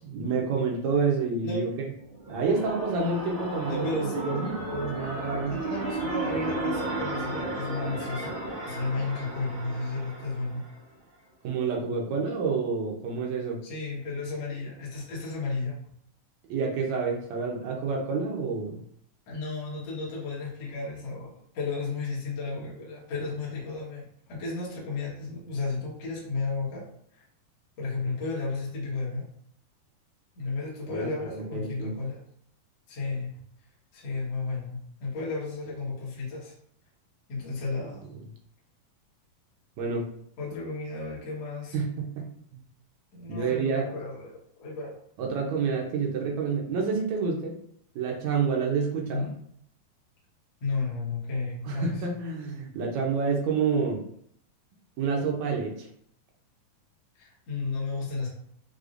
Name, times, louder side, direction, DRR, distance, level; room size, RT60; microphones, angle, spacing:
voice 1, 0.0-1.7 2.3-5.6 11.4-13.6 16.5-18.8 30.9-31.1 31.5-31.9 39.8-40.1 41.7-42.6 43.3-43.9 45.2-47.5 48.0-49.3 51.7-54.0 55.0-55.9, right 5 dB, 70° right, 0 dB, 1.8 m, -28 dB
sound 1, 2.0-10.8, right 2 dB, 50° right, 0.8 m, -34 dB
voice 2, 3.7-4.2 5.5-8.4 8.7-10.6 13.6-15.8 19.3-26.9 27.1-27.2 27.8-29.2 30.4-32.2 32.9-33.3 33.9-36.5 37.3-38.1 40.4-41.8 43.1-44.3 44.6-44.9 49.1-49.3 50.6-52.1 57.2-58.3, left 3 dB, 55° left, -6 dB, 2.1 m, -33 dB
6.3 x 2.9 x 2.5 m, 0.67 s
omnidirectional pair, 3.8 m